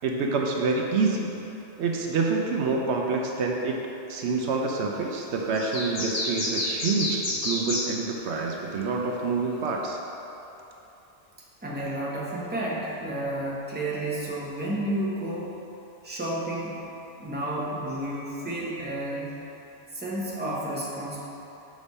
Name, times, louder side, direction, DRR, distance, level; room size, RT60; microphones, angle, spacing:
voice 1, 0.0-1.3 1.8-3.8 4.1-10.0, right 4 dB, 75° right, 0 dB, 0.9 m, -27 dB
sound 1, 5.5-7.9, left 2 dB, 45° left, 1.0 m, -29 dB
voice 2, 11.6-15.6 16.0-16.8 17.2-19.4 19.9-21.2, right 1 dB, 10° right, -6 dB, 1.0 m, -31 dB
6.2 x 5.2 x 4.1 m, 3.0 s
omnidirectional pair, 1.2 m